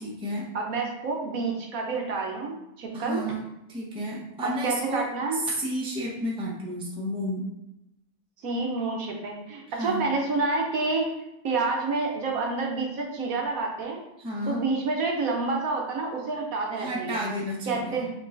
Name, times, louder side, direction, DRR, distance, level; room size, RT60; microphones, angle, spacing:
voice 1, 0.0-0.5 2.9-3.4 3.7-7.5 9.7-10.1 14.2-14.6 16.8-18.0, equal, 5° right, -5 dB, 0.6 m, -31 dB
voice 2, 0.5-3.2 4.4-5.4 8.4-11.1 11.4-14.0 14.5-17.2 17.7-18.1, right 3 dB, 65° right, 0 dB, 1.1 m, -28 dB
6.7 x 3.1 x 2.5 m, 0.88 s
omnidirectional pair, 1.7 m